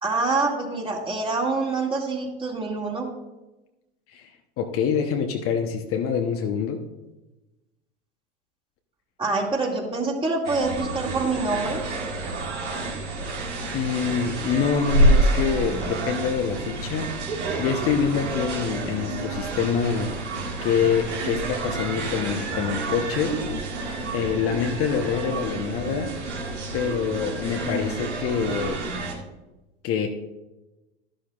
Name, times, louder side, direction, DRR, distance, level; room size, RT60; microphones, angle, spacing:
voice 1, 0.0-3.1 9.2-11.8, right 3 dB, 15° right, -1 dB, 2.2 m, -26 dB
voice 2, 4.6-6.8 13.7-17.1 17.6-20.1 20.6-23.4 24.1-26.1 26.7-28.8 29.8-30.1, left 7 dB, 40° left, 4 dB, 1.0 m, -25 dB
sound 1, 10.4-29.1, right 2 dB, 85° right, 1.9 m, -28 dB
11.5 x 11.5 x 2.4 m, 1.0 s
hypercardioid pair, 85°, 34 cm